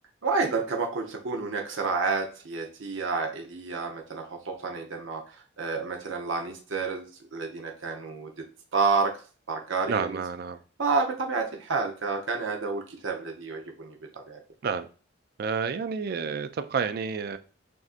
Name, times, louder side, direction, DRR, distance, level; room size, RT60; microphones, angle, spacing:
voice 1, 0.2-8.3 8.7-9.1 9.5-10.2 10.8-14.0 14.3-14.4, right 4 dB, 70° right, 0.7 m, -29 dB
voice 2, 9.9-10.6 14.6-14.9 15.4-17.4, right 5 dB, 50° right, 0.3 m, -30 dB
6.1 x 2.6 x 2.4 m
head